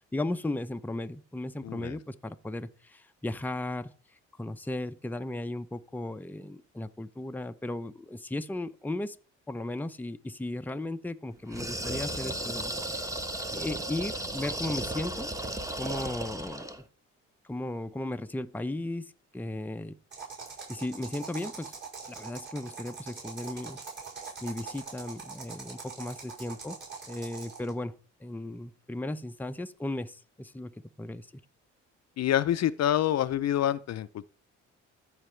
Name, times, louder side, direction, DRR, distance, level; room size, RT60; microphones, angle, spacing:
voice 1, 0.1-3.9 4.4-9.2 9.5-12.7 13.5-15.3 15.8-16.7 17.4-19.9 20.7-21.8 22.1-23.8 24.4-26.8 27.1-30.7 31.0-31.3, left 1 dB, 5° left, 0.7 m, -36 dB
voice 2, 1.6-2.0 32.2-34.3, left 11 dB, 60° left, 0.6 m, -27 dB
sound 1, 11.5-16.8, right 1 dB, 10° right, 1.2 m, -35 dB
sound 2, 20.1-27.7, right 5 dB, 40° right, 5.4 m, -43 dB
14.5 x 4.9 x 3.3 m
cardioid pair, 90°, 30 cm